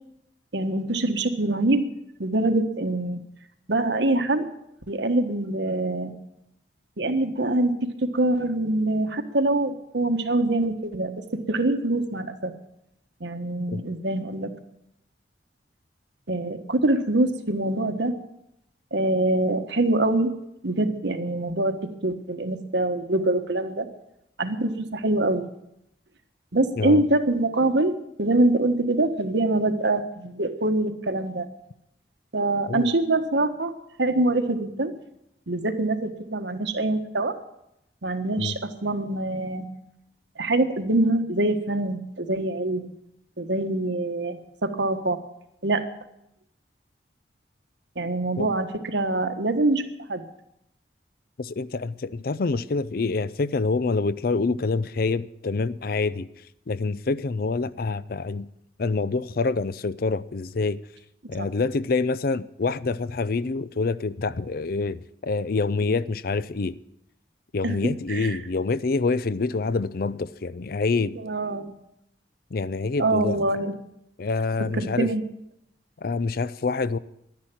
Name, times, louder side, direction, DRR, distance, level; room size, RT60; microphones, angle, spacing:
voice 1, 0.5-1.9 2.2-3.2 3.7-4.4 4.9-6.1 7.0-7.7 8.1-12.5 13.2-14.6 16.3-18.1 18.9-20.3 20.6-23.9 24.4-25.5 26.5-31.5 32.3-33.7 34.0-34.9 35.5-37.3 38.0-39.7 40.4-42.9 43.4-45.2 45.6-45.8 48.0-50.2 61.4-61.5 65.8-65.9 67.6-67.8 68.1-68.4 71.1-71.7 73.0-73.7 74.8-75.2, right 2 dB, 80° right, 1.4 m, -24 dB
voice 2, 51.4-56.3 56.7-58.5 58.8-60.8 61.3-66.7 67.5-71.1 72.5-73.4 74.2-75.1 76.0-77.0, left 4 dB, 55° left, 0.5 m, -26 dB
11.5 x 10.5 x 8.9 m
head